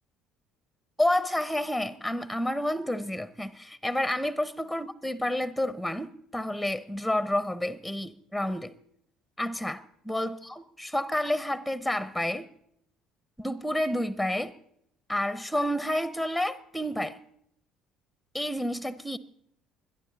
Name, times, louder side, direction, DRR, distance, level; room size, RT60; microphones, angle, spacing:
voice 1, 1.0-8.7 9.4-9.8 10.1-12.5 13.4-14.5 15.1-17.2 18.3-19.2, left 1 dB, ahead, 0.8 m, -29 dB
21.5 x 12.0 x 4.0 m
figure-of-eight pair, 60°, 0 cm